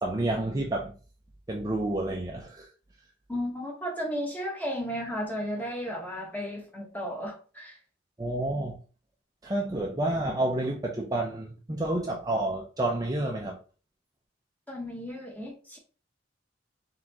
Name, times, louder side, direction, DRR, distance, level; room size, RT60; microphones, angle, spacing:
voice 1, 0.0-0.9 1.5-2.7 8.2-8.8 9.4-13.6, right 1 dB, 20° right, 0.5 m, -29 dB
voice 2, 3.3-7.8 14.7-15.8, equal, 10° left, 1.1 m, -34 dB
4.1 x 3.7 x 2.9 m
head